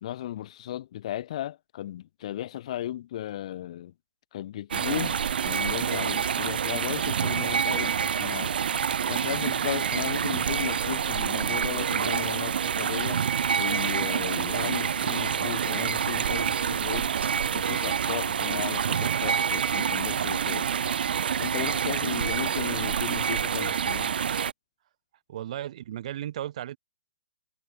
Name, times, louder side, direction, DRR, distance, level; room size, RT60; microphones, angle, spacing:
voice 1, 0.0-3.9 4.3-8.5 9.1-13.2 13.6-17.1 17.5-20.7 21.4-24.1, left 12 dB, 35° left, 1.4 m, -35 dB
sound 1, 4.7-24.5, right 7 dB, 60° right, 1.1 m, -27 dB
sound 2, 15.1-19.5, right 6 dB, 85° right, 5.2 m, -44 dB
voice 2, 25.3-26.8, right 12 dB, 40° right, 2.1 m, -35 dB
hypercardioid pair, 170°, 6 cm